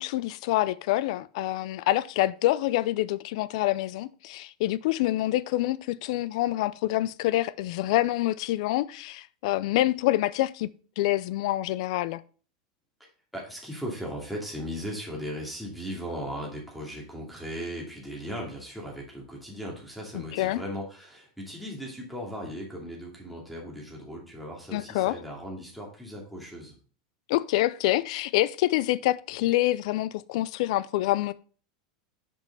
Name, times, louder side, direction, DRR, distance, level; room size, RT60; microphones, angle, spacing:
voice 1, 0.0-10.7 11.0-12.2 20.1-20.6 24.7-25.2 27.3-31.3, left 16 dB, 60° left, 0.5 m, -26 dB
voice 2, 13.0-26.8, equal, ahead, 2.5 m, -37 dB
6.2 x 5.4 x 5.4 m
supercardioid pair, 150°, 4 cm